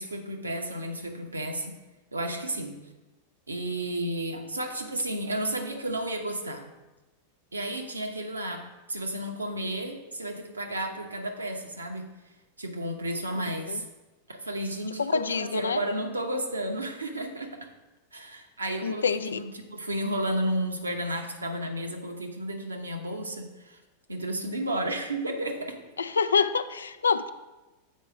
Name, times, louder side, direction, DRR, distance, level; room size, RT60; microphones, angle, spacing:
voice 1, 0.0-1.7 2.1-2.8 3.5-6.7 7.5-12.0 12.6-13.8 14.3-17.7 18.1-23.8 24.1-25.8, right 1 dB, 80° right, 3 dB, 0.9 m, -32 dB
voice 2, 15.0-15.8 18.8-19.4 26.0-27.3, left 5 dB, 70° left, 12 dB, 0.4 m, -26 dB
7.5 x 4.7 x 5.0 m, 1.1 s
figure-of-eight pair, 90°, 0 cm